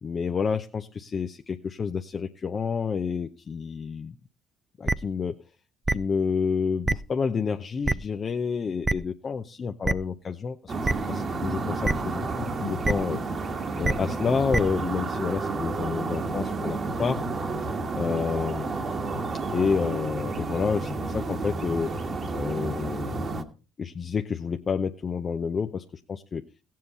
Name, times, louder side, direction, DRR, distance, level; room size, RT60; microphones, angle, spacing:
voice 1, 0.0-4.2 4.8-5.4 5.9-10.7 11.1-13.2 13.8-17.2 17.6-17.7 18.0-18.9 19.5-21.9 22.3-23.3 23.8-26.4, left 5 dB, 40° left, 7 dB, 0.7 m, -29 dB
sound 1, 4.9-5.0 5.9-6.0 6.9-7.0 7.9-8.0 8.8-8.9 9.8-9.9 10.8-10.9 11.8-11.9 12.8-12.9 13.8-13.9 14.5-14.6, right 2 dB, 15° right, 0.5 m, -23 dB
sound 2, 10.7-23.4, right 3 dB, 45° right, 1.5 m, -31 dB
16.5 x 7.6 x 4.1 m, 0.33 s
hypercardioid pair, 65°, 0 cm